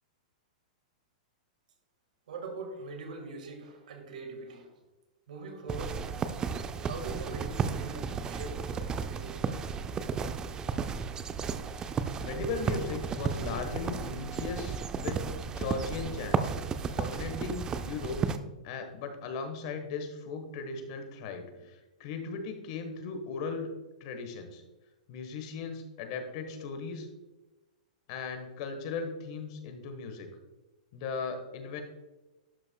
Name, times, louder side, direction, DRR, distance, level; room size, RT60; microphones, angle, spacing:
voice 1, 2.3-4.7 5.3-6.2 6.8-9.4, right 2 dB, 80° right, 5 dB, 1.7 m, -42 dB
sound 1, 5.7-18.4, right 6 dB, 15° right, 0.4 m, -33 dB
voice 2, 12.2-16.5 16.9-18.2 18.6-23.7 24.0-24.6 25.1-27.1 28.1-30.3 30.9-31.8, left 4 dB, 50° left, 6 dB, 1.3 m, -37 dB
11.5 x 5.3 x 2.3 m, 1.1 s
hypercardioid pair, 140°, 4 cm